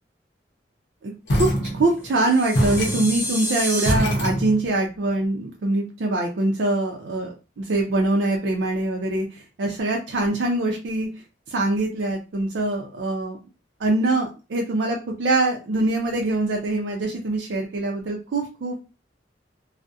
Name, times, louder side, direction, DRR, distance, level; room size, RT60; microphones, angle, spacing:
voice 1, 1.0-11.1 11.5-13.4 13.8-18.7, right 2 dB, 90° right, 0 dB, 0.4 m, -24 dB
sound 1, 1.3-2.2 2.5-4.9, equal, 85° left, 0.7 m, -24 dB
sound 2, 2.1-3.9, equal, 10° right, 0.5 m, -29 dB
2.3 x 2.0 x 2.6 m, 0.31 s
head